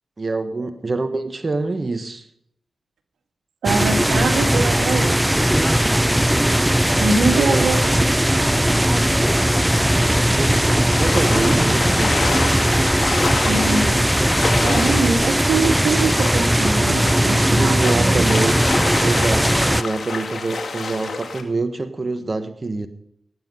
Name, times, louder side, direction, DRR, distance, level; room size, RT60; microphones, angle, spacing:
voice 1, 0.2-2.3 6.9-7.7 10.2-12.3 17.6-18.6 19.0-22.9, right 3 dB, 40° right, 9 dB, 1.4 m, -26 dB
sound 1, 3.6-19.8, right 1 dB, 10° right, 0.5 m, -18 dB
voice 2, 3.6-5.4 7.0-7.8 13.5-14.0 14.6-18.2, right 4 dB, 85° right, 6 dB, 2.0 m, -23 dB
sound 2, 9.0-21.4, left 4 dB, 65° left, 2.2 m, -29 dB
18.0 x 9.7 x 5.6 m, 0.72 s
supercardioid pair, 40°, 0 cm